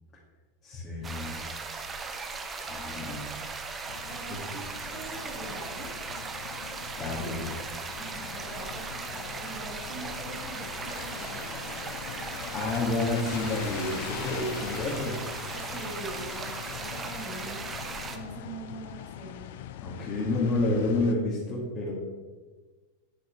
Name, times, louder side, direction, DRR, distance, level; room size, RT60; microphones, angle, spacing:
voice 1, 0.6-1.4 2.6-3.3 7.0-7.6 8.2-8.3 12.5-15.2 19.8-21.9, left 2 dB, 25° left, -6 dB, 2.0 m, -29 dB
sound 1, 1.0-18.2, right 4 dB, 20° right, 0.8 m, -38 dB
sound 2, 3.9-21.1, left 11 dB, 55° left, 0.4 m, -42 dB
voice 2, 4.1-4.6 4.9-5.9 7.9-11.8 15.5-17.7 18.1-19.5, right 3 dB, 35° right, -2 dB, 2.8 m, -43 dB
9.4 x 6.5 x 4.5 m, 1.3 s
figure-of-eight pair, 90°, 0 cm